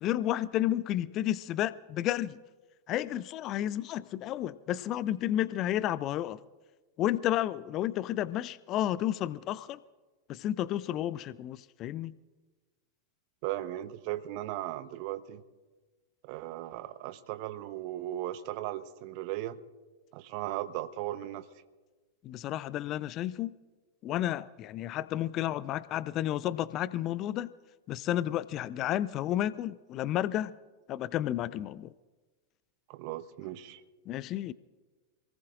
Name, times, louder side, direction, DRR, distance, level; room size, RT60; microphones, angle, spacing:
voice 1, 0.0-2.4 2.9-6.4 7.0-9.8 10.3-12.1 22.2-23.5 24.0-27.5 27.9-30.5 30.9-31.9 34.1-34.5, left 13 dB, 35° left, 0.4 m, -31 dB
voice 2, 13.4-15.4 16.2-19.6 20.1-21.5 32.9-33.8, right 14 dB, 45° right, 0.9 m, -37 dB
27.5 x 18.5 x 2.5 m
figure-of-eight pair, 90°, 0 cm